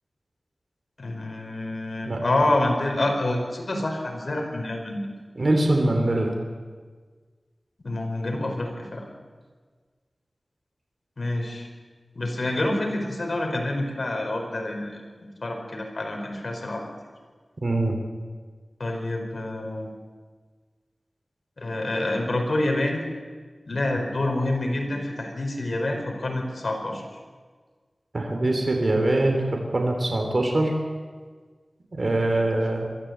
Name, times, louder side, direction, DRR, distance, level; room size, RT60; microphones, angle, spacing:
voice 1, 1.0-5.0 7.8-9.1 11.2-11.7 12.1-16.8 18.8-19.9 21.6-23.0 23.7-27.0, left 1 dB, 65° left, 2 dB, 4.7 m, -27 dB
voice 2, 5.4-6.3 17.6-17.9 28.1-30.7 31.9-32.9, right 2 dB, 55° right, 2 dB, 3.2 m, -23 dB
23.0 x 14.0 x 8.1 m, 1.5 s
wide cardioid pair, 70°, 0 cm